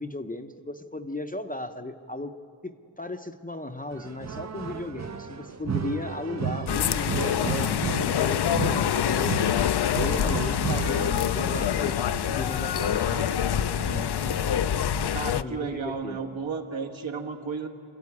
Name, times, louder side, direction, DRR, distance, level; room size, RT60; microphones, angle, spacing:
voice 1, 0.0-2.3 2.6-9.3 9.9-13.1 15.3-16.4, left 2 dB, 15° left, 7 dB, 0.7 m, -36 dB
sound 1, 3.9-15.3, right 6 dB, 35° right, 0.6 m, -34 dB
sound 2, 6.7-15.4, left 10 dB, 55° left, 0.5 m, -26 dB
voice 2, 15.1-17.7, right 5 dB, 70° right, 2 dB, 1.9 m, -33 dB
28.0 x 13.0 x 9.7 m, 2.4 s
wide cardioid pair, 125°, 49 cm